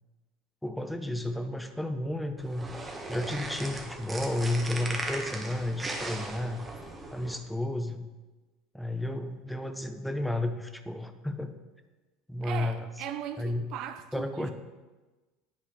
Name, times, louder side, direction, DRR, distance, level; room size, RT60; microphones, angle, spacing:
voice 1, 0.6-2.7 3.1-6.6 7.1-8.1 8.7-11.5 12.3-12.9 13.4-13.7 14.1-14.5, left 1 dB, 5° left, 0.7 m, -32 dB
sound 1, 2.4-7.4, right 2 dB, 20° right, 1.0 m, -38 dB
voice 2, 12.4-14.5, right 10 dB, 50° right, 0.4 m, -39 dB
10.0 x 4.8 x 3.4 m
figure-of-eight pair, 75°, 0 cm